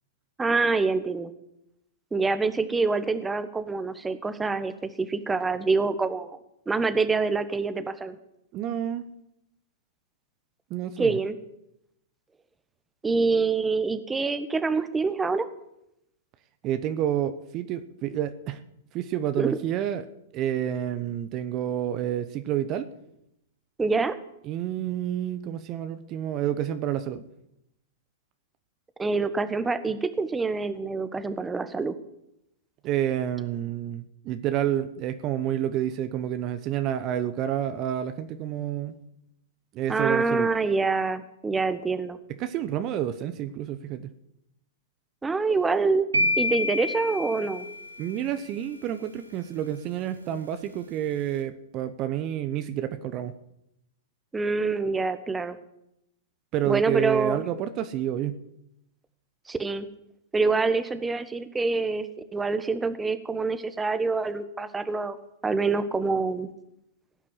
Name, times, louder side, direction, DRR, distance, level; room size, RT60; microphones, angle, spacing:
voice 1, 0.4-1.3 2.1-6.4 6.7-8.2 11.0-11.3 13.0-15.5 19.4-19.5 23.8-24.2 29.0-31.9 39.9-42.2 45.2-46.1 46.4-47.7 54.3-55.6 56.6-57.4 59.5-59.9 60.3-62.1 62.3-65.2 65.4-66.5, right 4 dB, 10° right, 11 dB, 1.1 m, -26 dB
voice 2, 8.5-9.0 10.7-11.2 16.6-18.6 18.9-20.1 20.3-22.9 24.4-27.3 32.8-38.9 39.7-40.5 42.4-44.1 48.0-53.3 56.5-58.4, right 11 dB, 40° right, 11 dB, 0.9 m, -29 dB
sound 1, 46.1-48.3, left 1 dB, 90° right, 1.5 m, -28 dB
17.0 x 5.9 x 9.6 m, 0.82 s
hypercardioid pair, 110°, 0 cm